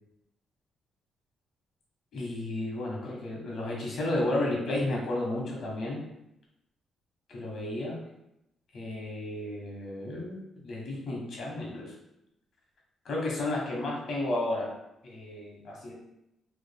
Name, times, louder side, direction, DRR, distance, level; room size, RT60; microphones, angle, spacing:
voice 1, 2.1-6.0 7.3-8.0 8.7-11.9 13.0-14.7 15.0-15.9, left 1 dB, 60° left, -2 dB, 1.0 m, -32 dB
3.4 x 2.9 x 2.2 m, 0.85 s
cardioid pair, 135°, 0 cm